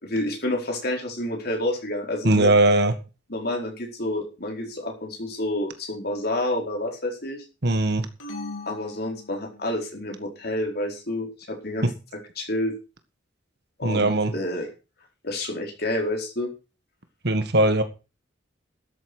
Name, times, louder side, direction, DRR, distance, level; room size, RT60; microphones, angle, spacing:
voice 1, 0.0-2.5 3.3-7.4 8.7-11.9 12.4-12.7 13.8-14.7 15.2-16.5, left 1 dB, 55° left, 1 dB, 4.5 m, -29 dB
voice 2, 2.2-2.9 7.6-8.1 13.8-14.3 17.2-17.8, right 2 dB, 60° right, 9 dB, 1.8 m, -19 dB
sound 1, 8.2-9.9, left 2 dB, 90° left, 4.0 m, -39 dB
12.5 x 8.7 x 6.3 m, 0.31 s
head